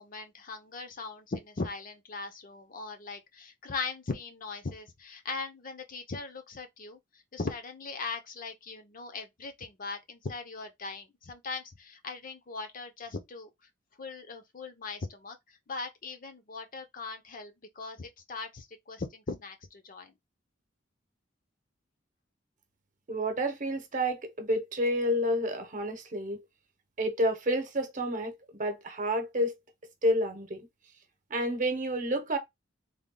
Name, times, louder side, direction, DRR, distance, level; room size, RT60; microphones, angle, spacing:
voice 1, 0.0-7.0 7.3-13.5 14.0-20.1, left 3 dB, 45° left, 0.7 m, -39 dB
voice 2, 23.1-26.4 27.0-29.6 30.0-30.7 31.3-32.4, equal, 40° right, 0.9 m, -29 dB
3.5 x 2.2 x 3.8 m
head